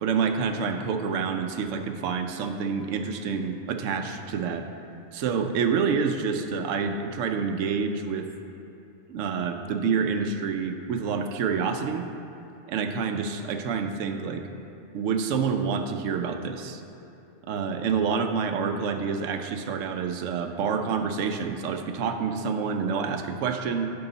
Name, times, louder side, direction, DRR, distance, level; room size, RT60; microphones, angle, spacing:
voice 1, 0.0-4.7 5.1-8.3 9.1-12.1 12.7-14.4 14.9-16.8 17.5-23.9, right 5 dB, 85° right, 6 dB, 0.9 m, -28 dB
10.5 x 4.8 x 3.9 m, 2.9 s
omnidirectional pair, 1.3 m